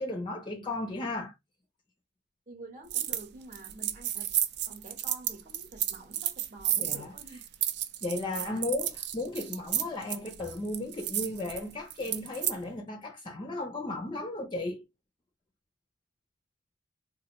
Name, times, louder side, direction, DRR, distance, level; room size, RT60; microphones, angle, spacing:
voice 1, 0.0-1.3 6.8-7.1 8.0-14.8, left 2 dB, 25° left, 0.4 m, -35 dB
voice 2, 2.5-4.3 4.6-7.4 8.4-8.7, right 2 dB, 40° right, 0.9 m, -48 dB
sound 1, 2.9-3.3 3.5-12.6, right 12 dB, 60° right, 0.4 m, -32 dB
4.0 x 2.5 x 2.9 m
head